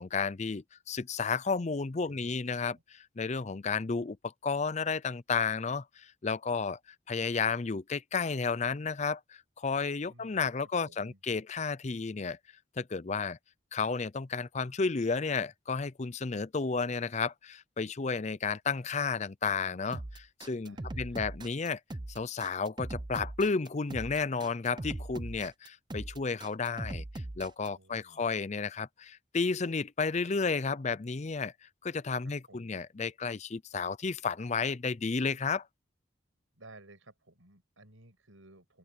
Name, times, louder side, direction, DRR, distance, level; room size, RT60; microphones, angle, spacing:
voice 1, 0.0-6.8 7.1-12.4 12.8-13.4 13.7-21.8 22.1-27.0 27.4-35.7, left 4 dB, 35° left, 0.5 m, -32 dB
voice 2, 10.1-10.5 10.8-11.2 20.6-21.3 27.6-28.3 32.2-32.8 36.6-38.8, right 2 dB, 85° right, 6.5 m, -57 dB
sound 1, 19.9-27.7, right 1 dB, 20° right, 0.6 m, -40 dB
open air
head